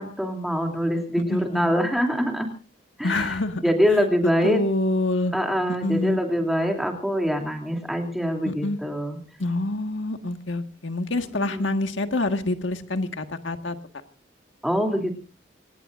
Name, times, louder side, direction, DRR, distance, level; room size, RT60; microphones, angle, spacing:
voice 1, 0.0-2.5 3.0-4.6 5.3-9.2 11.3-11.7 14.6-15.2, equal, ahead, 2 dB, 2.8 m, -24 dB
voice 2, 1.3-1.7 3.0-3.6 4.4-5.3 5.8-6.2 8.5-8.8 9.4-13.8, left 2 dB, 90° left, 7 dB, 1.6 m, -26 dB
26.5 x 19.0 x 2.5 m, 0.35 s
head